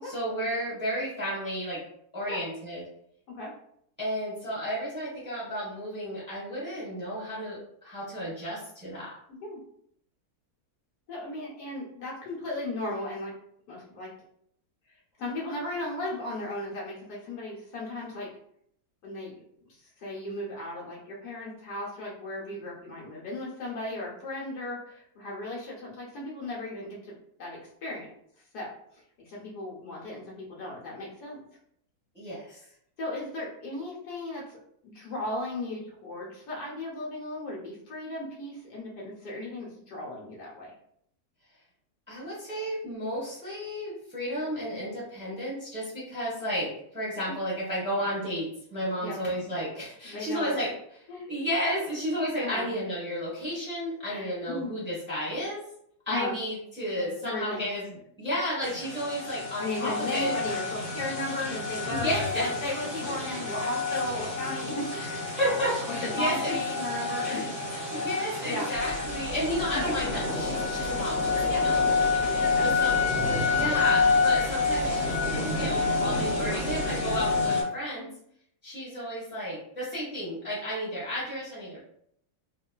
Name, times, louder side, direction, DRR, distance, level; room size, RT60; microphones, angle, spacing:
voice 1, 0.0-1.8 2.1-2.8 4.0-9.1 32.1-32.6 42.1-50.7 51.3-55.6 56.1-60.3 61.9-62.5 63.0-63.4 65.3-66.5 67.2-67.5 67.9-72.1 72.6-73.0 73.3-78.1 78.6-81.8, equal, 10° right, -8 dB, 1.1 m, -32 dB
voice 2, 9.3-9.6 11.1-13.3 13.7-14.1 15.2-18.3 19.0-19.3 20.0-27.1 27.4-28.1 28.5-28.7 29.2-31.4 33.0-40.7 47.3-47.4 49.0-49.2 50.0-50.6 51.1-51.3 52.4-52.7 54.1-54.7 56.1-56.4 57.2-57.6 59.6-65.4 65.9-68.1 68.4-68.7 69.7-69.8 71.5-72.7 73.3-73.5 75.6-75.7 76.3-76.9 77.9-78.1, left 1 dB, 75° left, -4 dB, 1.4 m, -36 dB
sound 1, 58.6-77.6, left 4 dB, 25° left, 1.2 m, -28 dB
sound 2, 68.7-77.5, equal, 60° right, 0.4 m, -42 dB
3.5 x 2.5 x 2.2 m, 0.69 s
omnidirectional pair, 1.7 m